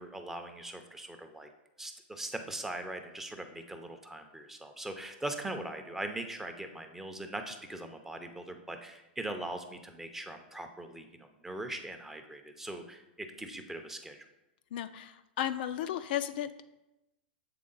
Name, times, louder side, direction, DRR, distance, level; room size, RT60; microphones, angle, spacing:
voice 1, 0.0-1.5 1.8-14.2, right 1 dB, 5° right, 6 dB, 0.5 m, -41 dB
voice 2, 14.7-16.5, left 11 dB, 60° left, 10 dB, 0.3 m, -34 dB
7.6 x 3.4 x 3.9 m, 0.95 s
hypercardioid pair, 125°, 6 cm